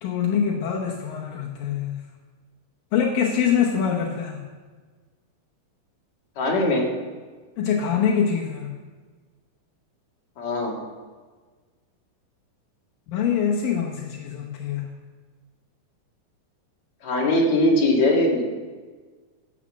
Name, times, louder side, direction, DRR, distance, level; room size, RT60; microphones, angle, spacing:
voice 1, 0.0-2.0 2.9-4.5 7.6-8.8 13.1-14.9, left 7 dB, 75° left, -1 dB, 2.8 m, -24 dB
voice 2, 6.4-6.9 10.4-10.8 17.0-18.4, left 1 dB, 55° left, -1 dB, 3.0 m, -20 dB
12.5 x 7.3 x 7.2 m, 1.4 s
omnidirectional pair, 4.1 m